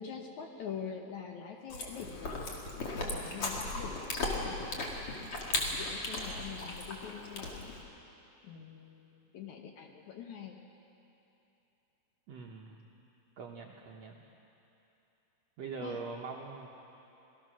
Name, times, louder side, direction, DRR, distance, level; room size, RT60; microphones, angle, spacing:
voice 1, 0.0-2.5 2.9-4.8 5.5-7.8 8.4-10.6 15.8-16.0, left 7 dB, 70° left, 3 dB, 2.0 m, -45 dB
Chewing mastication, 1.7-7.8, left 2 dB, 40° left, 2.9 m, -36 dB
voice 2, 12.3-12.9 13.4-14.1 15.6-16.7, right 5 dB, 75° right, 0 dB, 1.6 m, -42 dB
26.5 x 18.5 x 6.3 m, 3.0 s
omnidirectional pair, 4.4 m